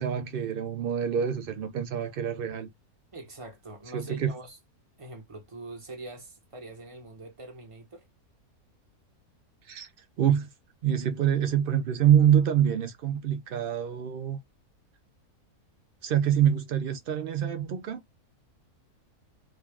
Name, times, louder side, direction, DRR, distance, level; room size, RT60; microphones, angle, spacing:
voice 1, 0.0-2.7 3.9-4.3 9.6-9.9 10.2-10.5 10.8-14.4 16.0-18.0, right 9 dB, 85° right, 0.4 m, -25 dB
voice 2, 3.1-4.6 5.0-8.1, right 2 dB, 25° right, 0.9 m, -44 dB
3.7 x 2.3 x 3.4 m
omnidirectional pair, 1.6 m